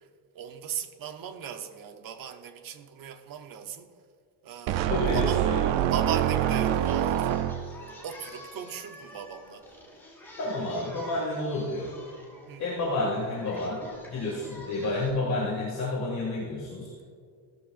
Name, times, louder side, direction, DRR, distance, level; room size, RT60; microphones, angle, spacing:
voice 1, 0.3-3.9 4.4-5.4 5.8-7.5 8.0-9.6 12.5-12.7, right 8 dB, 45° right, 7 dB, 0.9 m, -37 dB
sound 1, 4.7-7.9, right 11 dB, 75° right, 0.7 m, -25 dB
voice 2, 4.9-5.7 10.4-11.9 12.6-13.8 14.1-17.0, left 2 dB, 35° left, -5 dB, 2.2 m, -30 dB
Singing, 5.1-15.1, equal, 5° left, 2.1 m, -48 dB
16.0 x 13.0 x 2.5 m, 2.2 s
cardioid pair, 170°, 46 cm